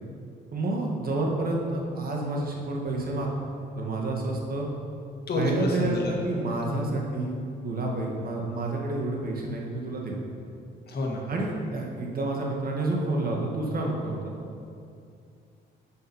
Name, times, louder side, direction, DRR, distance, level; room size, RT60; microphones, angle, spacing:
voice 1, 0.5-3.3 3.8-4.7 5.3-7.4 7.6-10.2 11.3-14.6, right 2 dB, 50° right, -1 dB, 1.7 m, -29 dB
voice 2, 5.3-6.0 10.9-11.2, left 2 dB, 55° left, -1 dB, 1.8 m, -28 dB
6.8 x 6.4 x 5.5 m, 2.5 s
cardioid pair, 90°, 20 cm